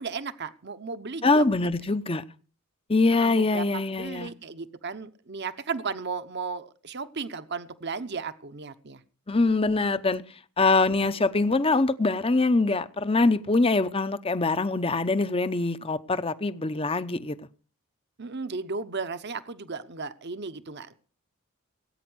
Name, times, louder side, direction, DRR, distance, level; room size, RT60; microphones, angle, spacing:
voice 1, 0.0-1.7 3.1-9.0 18.2-20.9, right 4 dB, 50° right, 1.0 m, -35 dB
voice 2, 1.2-2.2 2.9-4.3 9.3-10.2 10.6-17.4, left 3 dB, 25° left, 0.8 m, -23 dB
18.5 x 9.2 x 6.2 m
head